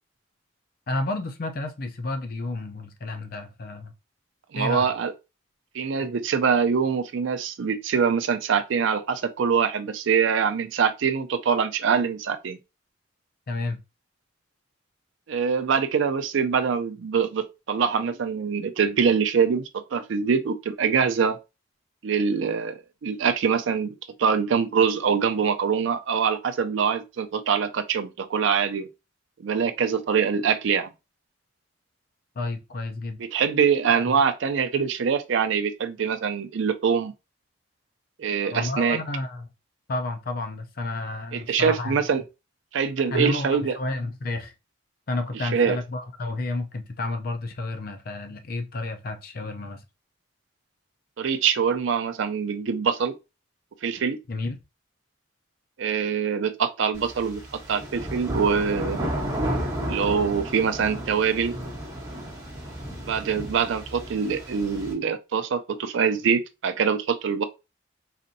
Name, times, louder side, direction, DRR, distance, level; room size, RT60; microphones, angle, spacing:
voice 1, 0.9-3.9 4.5-4.9 13.5-13.8 32.4-33.2 33.9-34.0 38.5-39.5 39.9-42.0 43.1-44.5 45.1-49.8 54.3-54.6, left 2 dB, 50° left, 0.5 m, -31 dB
voice 2, 4.5-5.1 5.7-12.6 15.3-21.4 22.0-28.9 29.4-30.9 33.2-37.1 38.2-39.0 41.3-42.2 42.7-43.8 45.4-45.8 51.2-53.1 53.8-54.2 55.8-59.0 59.9-61.6 63.0-67.4, right 6 dB, 70° right, 0.4 m, -24 dB
sound 1, 56.9-64.9, equal, 20° right, 1.3 m, -33 dB
4.1 x 2.6 x 2.6 m
head